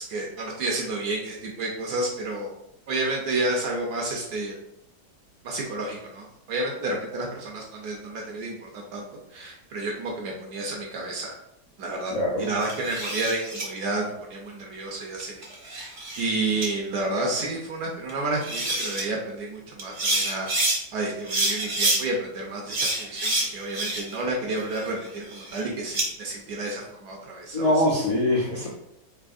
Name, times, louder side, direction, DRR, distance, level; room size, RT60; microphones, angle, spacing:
voice 1, 0.1-2.5 2.9-4.6 5.4-9.1 9.3-11.3 11.8-27.8, right 2 dB, 75° right, -1 dB, 1.0 m, -30 dB
voice 2, 12.1-12.5 27.5-28.7, left 1 dB, 70° left, -6 dB, 0.3 m, -23 dB
sound 1, 12.6-13.6 15.2-16.3 16.6-16.7 18.1-18.2 18.4-19.0 19.8-20.8 21.3-22.0 22.7-24.2 24.6-26.1, right 2 dB, 45° right, 0.6 m, -27 dB
3.5 x 2.7 x 2.4 m, 0.78 s
omnidirectional pair, 1.9 m